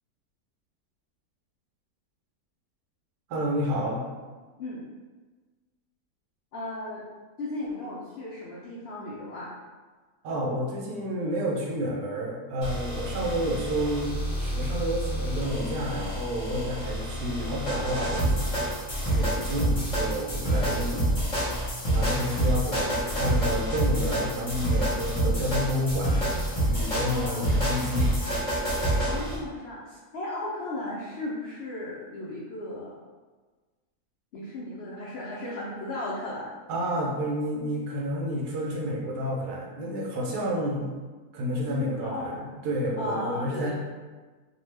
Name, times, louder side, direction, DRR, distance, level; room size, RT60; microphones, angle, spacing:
voice 1, 3.3-4.0 10.2-14.1 14.4-18.5 19.1-21.1 21.9-26.1 26.5-28.2 36.7-40.9 41.3-42.4 42.6-43.7, equal, 80° right, -2 dB, 1.2 m, -30 dB
voice 2, 6.5-7.0 7.4-9.5 27.1-27.7 29.1-33.0 34.3-36.5 41.7-42.5 43.0-43.7, left 2 dB, 85° left, -6 dB, 0.5 m, -35 dB
sound 1, 12.6-29.4, right 1 dB, 25° left, 0.8 m, -28 dB
2.7 x 2.2 x 3.2 m, 1.3 s
omnidirectional pair, 1.6 m